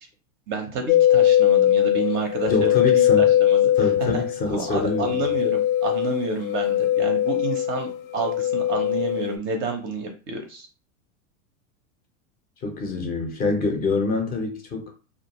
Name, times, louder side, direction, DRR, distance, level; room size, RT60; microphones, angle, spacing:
voice 1, 0.5-10.7, right 4 dB, 30° right, 0.4 m, -30 dB
sound 1, 0.9-9.4, left 12 dB, 75° left, 0.6 m, -21 dB
voice 2, 2.5-3.3 3.8-5.3 12.6-14.9, left 3 dB, 25° left, 0.5 m, -26 dB
2.3 x 2.2 x 2.9 m
hypercardioid pair, 120°, 42 cm